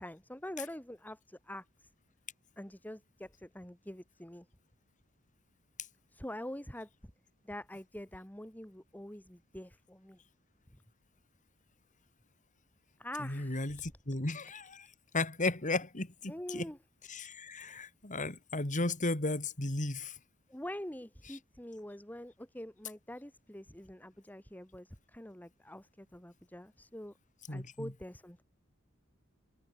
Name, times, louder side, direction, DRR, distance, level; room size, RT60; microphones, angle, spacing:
voice 1, 0.0-1.9 2.6-4.5 6.1-6.9 7.4-10.2 13.0-13.9 16.3-16.8 20.5-27.1 27.5-28.4, left 1 dB, 10° left, 3.4 m, -45 dB
voice 2, 13.2-14.9 15.1-16.7 17.1-20.2 27.5-27.9, left 2 dB, 35° left, 2.9 m, -35 dB
head